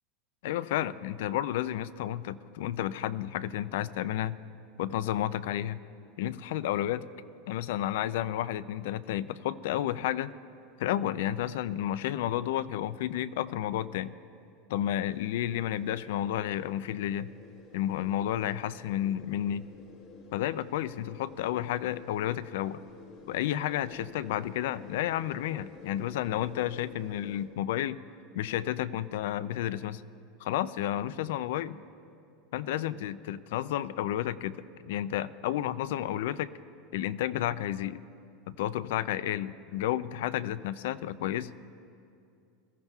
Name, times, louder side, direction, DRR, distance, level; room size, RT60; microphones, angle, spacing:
voice 1, 0.4-4.4 4.8-5.8 6.2-7.0 7.5-10.3 10.8-14.2 14.7-17.3 17.7-19.7 20.3-22.8 23.3-28.0 28.3-30.0 30.4-31.8 32.5-36.5 36.9-38.0 38.5-41.5, left 12 dB, 70° left, 16 dB, 0.4 m, -31 dB
sound 1, 14.7-27.5, left 4 dB, 45° left, 1.3 m, -52 dB
21.0 x 14.0 x 2.4 m, 2.5 s
supercardioid pair, 160°, 0 cm